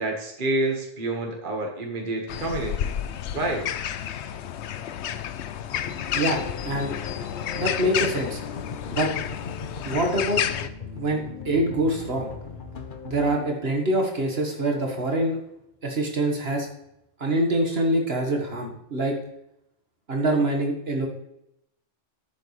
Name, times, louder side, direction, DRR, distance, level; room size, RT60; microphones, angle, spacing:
voice 1, 0.0-2.9 3.3-3.7, right 2 dB, 50° right, 1 dB, 1.7 m, -28 dB
sound 1, 2.3-10.7, left 9 dB, 80° left, 0.9 m, -31 dB
sound 2, 5.7-13.8, left 5 dB, 50° left, 1.1 m, -39 dB
voice 2, 6.1-6.9 7.5-8.4 8.9-9.1 9.8-10.4 10.9-12.3 13.0-15.4 15.8-16.7 17.2-19.2 20.1-21.1, right 1 dB, 65° right, 2 dB, 1.9 m, -25 dB
11.0 x 8.2 x 3.2 m, 0.80 s
omnidirectional pair, 1.1 m